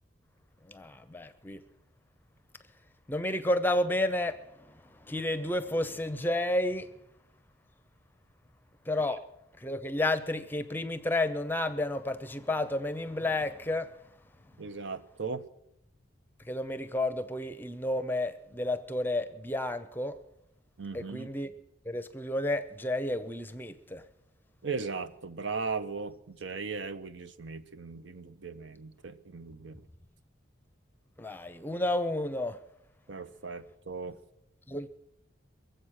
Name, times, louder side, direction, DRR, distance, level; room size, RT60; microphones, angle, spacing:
voice 1, 0.6-1.6 3.1-6.9 8.9-9.3 9.6-14.0 16.4-20.2 20.9-21.5 21.8-24.0 31.2-32.6 34.7-34.9, left 1 dB, 10° left, 0.6 m, -31 dB
voice 2, 14.6-15.4 20.8-21.3 24.6-29.8 33.1-34.2, right 4 dB, 70° right, 0.7 m, -37 dB
23.0 x 7.9 x 6.3 m
head